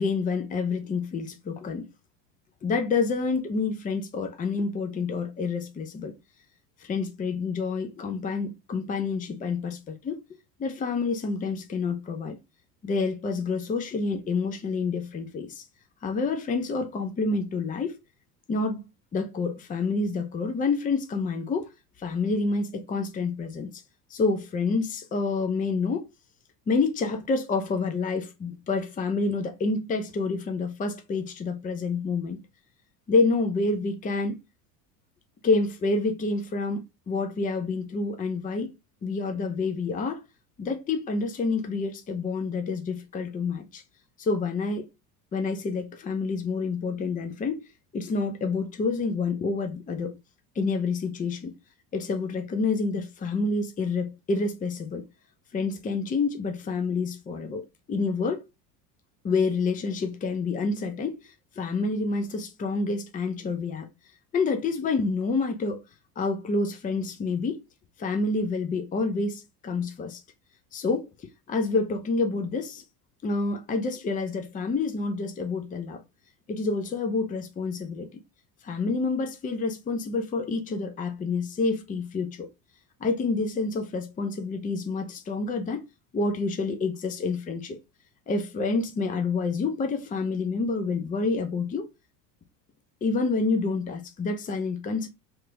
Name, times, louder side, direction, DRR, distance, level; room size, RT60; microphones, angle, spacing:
voice 1, 0.0-1.9 2.6-6.1 6.8-10.2 10.6-12.4 12.8-15.6 16.0-18.0 18.5-21.7 22.0-23.7 24.1-26.1 26.7-32.4 33.1-34.3 35.4-36.8 37.1-38.7 39.0-40.2 40.6-43.8 44.2-44.9 45.3-47.7 47.9-50.2 50.6-51.5 51.9-55.0 55.5-58.4 59.2-61.2 61.6-63.9 64.3-65.8 66.2-67.6 68.0-70.2 70.7-71.1 71.5-72.8 73.2-76.0 76.5-78.1 78.6-82.5 83.0-85.8 86.1-87.8 88.3-91.9 93.0-95.1, left 4 dB, 15° left, 0.6 m, -28 dB
3.0 x 2.5 x 3.2 m
hypercardioid pair, 80°, 49 cm